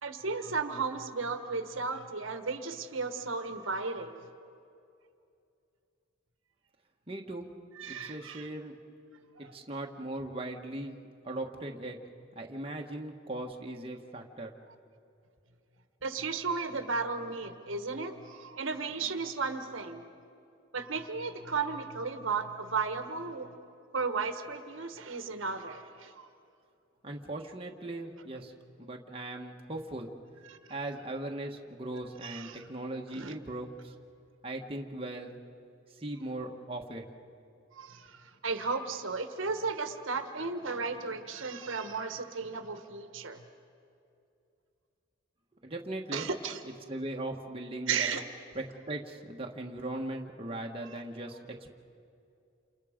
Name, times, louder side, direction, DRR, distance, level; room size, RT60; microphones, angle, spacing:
voice 1, 0.0-4.2 7.8-8.5 9.4-9.5 16.0-20.1 20.7-23.5 23.9-26.3 30.4-30.7 32.2-32.6 33.1-33.3 37.7-43.4 46.1-46.6 47.9-48.3, right 4 dB, 80° right, 8 dB, 1.4 m, -34 dB
voice 2, 7.1-7.5 7.9-8.8 9.4-11.0 11.2-12.0 12.3-14.5 27.0-28.5 28.8-30.1 30.7-33.9 34.4-35.4 36.0-37.0 45.6-46.3 46.9-48.1 48.5-51.8, right 1 dB, 25° right, 1 dB, 1.4 m, -39 dB
29.0 x 28.0 x 5.1 m, 2.6 s
head